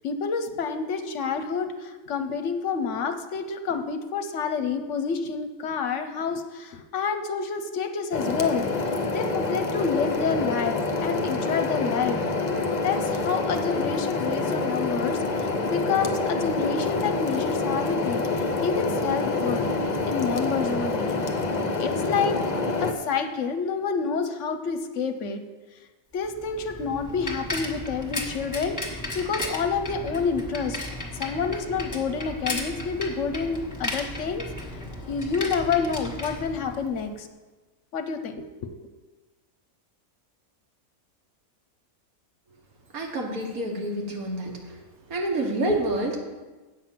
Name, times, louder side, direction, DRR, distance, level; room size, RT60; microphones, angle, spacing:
voice 1, 0.0-8.7 9.1-12.2 12.8-19.7 20.0-21.1 21.8-22.4 22.8-25.4 26.1-30.8 31.2-34.5 35.1-37.3 37.9-38.8, left 5 dB, 65° left, 8 dB, 0.9 m, -28 dB
sound 1, 8.1-22.9, left 3 dB, 40° left, 0.7 m, -27 dB
Bicycle, 26.2-37.1, left 1 dB, 15° left, 1.3 m, -35 dB
voice 2, 42.9-44.5 45.1-46.2, right 1 dB, 85° right, 1 dB, 1.9 m, -27 dB
8.4 x 5.8 x 7.5 m, 1.3 s
omnidirectional pair, 1.5 m